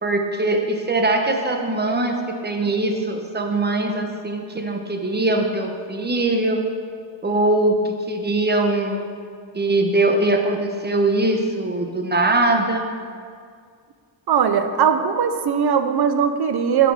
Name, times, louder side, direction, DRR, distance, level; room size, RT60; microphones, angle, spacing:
voice 1, 0.0-2.2 2.4-6.6 7.2-9.0 9.5-12.9, right 2 dB, 20° right, 3 dB, 1.0 m, -21 dB
voice 2, 14.3-16.9, right 7 dB, 55° right, 9 dB, 0.7 m, -19 dB
10.0 x 6.2 x 4.8 m, 2.1 s
cardioid pair, 115°, 46 cm